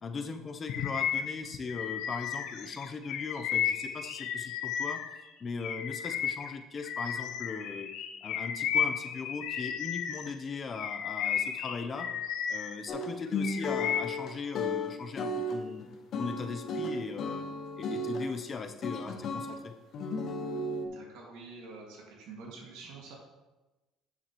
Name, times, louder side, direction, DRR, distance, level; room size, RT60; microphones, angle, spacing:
voice 1, 0.0-5.0 5.4-7.9 8.2-12.1 12.5-15.9 16.2-17.4 17.8-19.8, left 4 dB, 30° left, 6 dB, 0.7 m, -39 dB
Bird vocalization bird call bird song, 0.7-5.2 5.6-10.3 10.7-12.8 13.2-14.2, left 8 dB, 65° left, 0.7 m, -33 dB
sound 1, 12.9-18.3 18.8-19.6 19.9-20.9, left 2 dB, 50° left, 1.1 m, -34 dB
voice 2, 20.8-23.2, right 4 dB, 85° right, -2 dB, 2.1 m, -47 dB
9.4 x 7.3 x 3.1 m, 1.1 s
cardioid pair, 130°, 0 cm